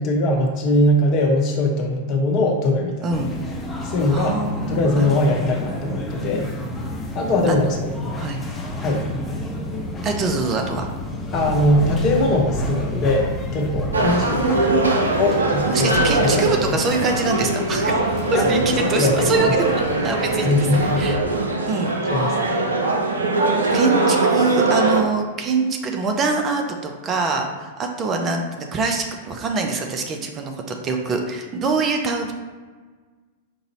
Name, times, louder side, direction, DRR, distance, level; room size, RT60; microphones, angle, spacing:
voice 1, 0.0-3.1 3.8-6.5 7.1-8.1 8.8-9.0 11.3-14.7 15.2-16.4 18.3-18.5 18.8-19.5 20.4-20.9 22.1-22.6, left 1 dB, 40° left, 1 dB, 0.8 m, -21 dB
sound 1, 3.1-21.1, left 1 dB, 15° left, 0.7 m, -30 dB
voice 2, 4.1-5.1 7.5-7.8 8.2-8.4 10.0-10.9 14.1-14.9 15.7-17.9 18.3-18.6 18.9-20.7 21.0-21.2 21.7-22.3 23.7-32.3, right 4 dB, 25° right, 3 dB, 0.5 m, -24 dB
sound 2, 13.9-25.0, right 2 dB, 75° right, 0.5 m, -21 dB
5.3 x 2.6 x 3.0 m, 1.4 s
figure-of-eight pair, 95°, 0 cm